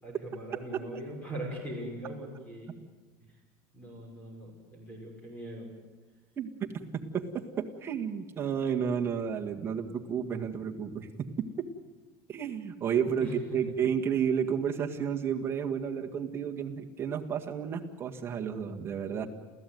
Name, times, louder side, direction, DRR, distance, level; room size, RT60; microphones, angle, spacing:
voice 1, 0.0-2.7 3.2-3.3 3.7-5.7 13.2-13.6 19.1-19.3, right 1 dB, 15° left, 1 dB, 5.8 m, -41 dB
voice 2, 6.9-11.1 11.6-11.7 12.3-19.3, right 7 dB, 25° right, 1 dB, 1.9 m, -31 dB
29.0 x 15.0 x 9.5 m, 1.3 s
cardioid pair, 160°, 10 cm